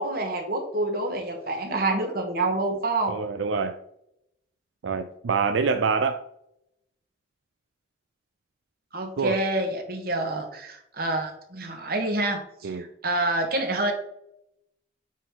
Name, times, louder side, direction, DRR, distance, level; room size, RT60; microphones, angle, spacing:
voice 1, 0.0-3.1 8.9-13.9, right 2 dB, 50° right, 3 dB, 1.5 m, -27 dB
voice 2, 3.1-3.8 4.8-6.2 9.2-9.4 12.6-12.9, right 5 dB, 80° right, 8 dB, 0.4 m, -25 dB
8.9 x 4.8 x 3.8 m, 0.80 s
head